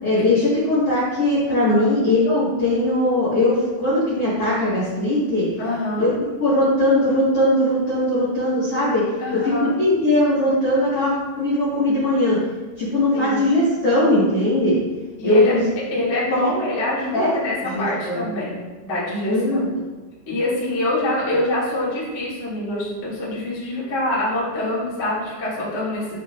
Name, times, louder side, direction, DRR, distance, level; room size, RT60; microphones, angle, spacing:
voice 1, 0.0-5.5 6.0-6.1 6.4-9.0 9.3-12.4 12.8-14.8 15.2-15.6 16.3-16.5 17.1-17.3 17.7-18.2 19.3-19.7, left 1 dB, 90° left, -9 dB, 1.2 m, -20 dB
voice 2, 5.6-6.1 9.2-9.7 13.1-13.5 15.2-15.6 15.9-19.7 20.3-26.2, left 1 dB, 70° left, -7 dB, 0.6 m, -25 dB
8.8 x 7.5 x 2.6 m, 1.2 s
omnidirectional pair, 5.8 m